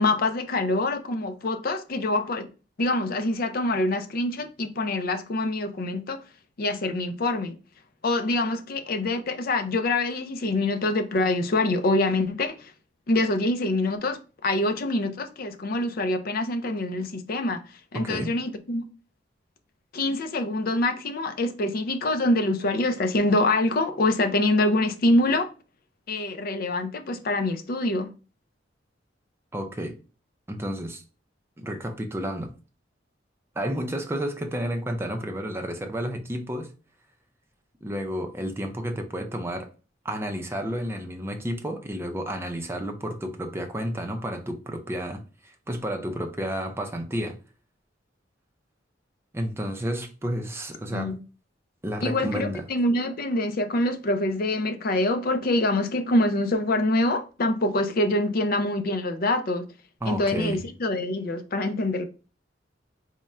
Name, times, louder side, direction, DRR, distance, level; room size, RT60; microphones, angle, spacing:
voice 1, 0.0-2.5 2.8-6.2 6.6-7.6 8.0-12.7 13.1-17.6 17.9-18.8 19.9-25.5 26.1-28.1 50.9-51.2 52.0-59.6 60.1-62.1, left 2 dB, 55° left, 0.5 m, -25 dB
voice 2, 17.9-18.3 29.5-30.0 30.5-31.0 31.6-32.5 33.6-36.7 37.8-39.7 40.0-47.4 49.3-51.2 51.8-52.7 60.0-60.6, equal, 15° right, 0.5 m, -31 dB
3.5 x 2.1 x 4.1 m
head